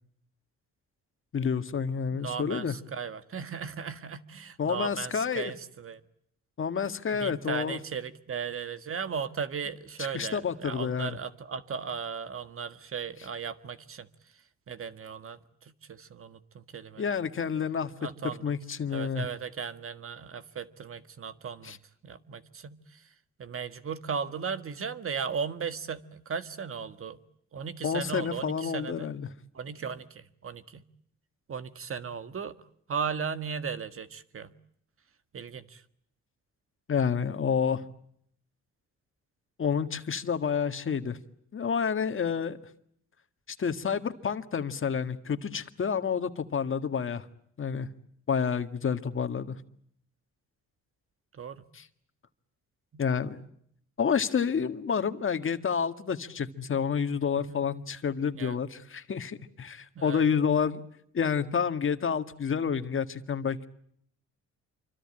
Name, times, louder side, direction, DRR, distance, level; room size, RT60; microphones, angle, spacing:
voice 1, 1.3-2.8 4.6-5.5 6.6-7.8 10.0-11.2 17.0-17.9 18.4-19.3 21.6-21.8 27.8-29.3 36.9-37.8 39.6-41.2 41.5-42.6 43.5-47.3 47.6-47.9 48.3-49.6 51.7-51.9 53.0-53.5 54.0-60.8 61.1-63.7, left 6 dB, 45° left, 9 dB, 1.8 m, -29 dB
voice 2, 2.1-6.0 7.1-14.1 14.7-17.1 18.0-18.4 18.9-21.8 22.0-23.1 23.4-27.2 27.5-29.1 29.5-30.8 31.5-32.6 32.9-34.5 35.3-35.8 51.3-51.6 52.9-53.0 57.5-57.6 58.3-58.6 59.9-60.2, right 6 dB, 45° right, 11 dB, 1.7 m, -36 dB
27.0 x 25.0 x 8.8 m, 0.68 s
cardioid pair, 90°, 30 cm